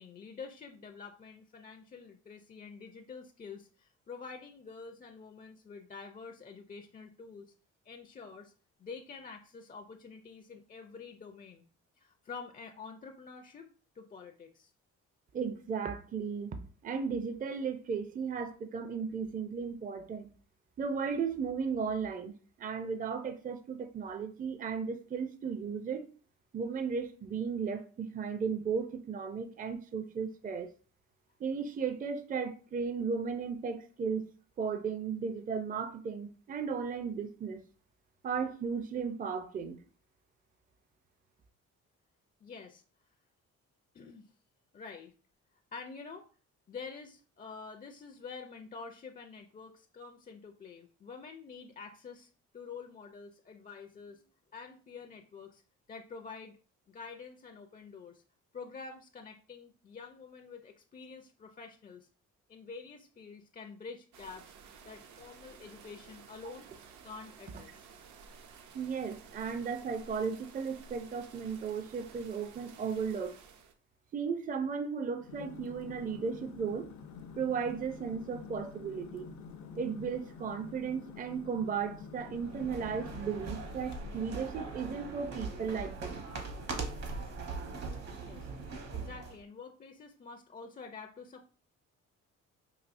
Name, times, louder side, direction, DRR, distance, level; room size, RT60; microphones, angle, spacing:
voice 1, 0.0-7.5 7.8-8.5 8.8-11.6 12.0-13.7 13.9-14.7 42.4-42.8 43.9-44.3 44.7-45.1 45.7-46.2 46.7-54.3 54.5-55.6 55.9-56.6 56.9-58.2 58.5-62.1 62.5-64.5 64.9-66.7 67.0-67.9 88.2-88.5 88.9-91.5, left 5 dB, 30° left, 0.4 m, -47 dB
voice 2, 15.3-16.6 16.8-20.3 20.8-26.1 26.5-30.7 31.4-34.3 34.6-37.6 38.2-39.8 68.7-73.3 74.1-76.9 77.4-79.3 79.8-86.3, right 6 dB, 30° right, 0.5 m, -35 dB
sound 1, 64.1-73.7, right 6 dB, 75° right, 0.7 m, -54 dB
sound 2, 75.2-84.4, left 5 dB, 70° left, 0.6 m, -48 dB
sound 3, 82.2-89.4, right 4 dB, 55° right, 1.0 m, -41 dB
4.9 x 2.6 x 2.5 m
cardioid pair, 90°, 30 cm